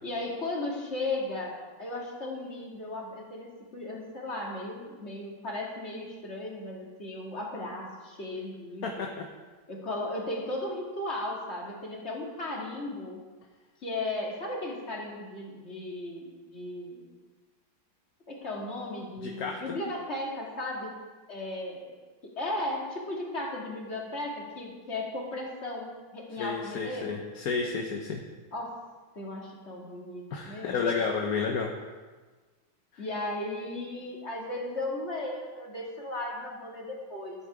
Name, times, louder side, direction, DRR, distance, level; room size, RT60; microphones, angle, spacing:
voice 1, 0.0-9.1 9.7-13.2 13.8-17.1 18.3-20.9 21.3-21.9 22.2-27.1 28.5-28.8 29.2-31.0 33.0-37.5, left 2 dB, 35° left, -2 dB, 2.4 m, -36 dB
voice 2, 8.8-9.2 19.2-19.8 26.4-28.2 30.3-31.7 32.9-33.0, left 5 dB, 55° left, 1 dB, 1.2 m, -31 dB
12.0 x 9.7 x 4.9 m, 1.3 s
omnidirectional pair, 2.2 m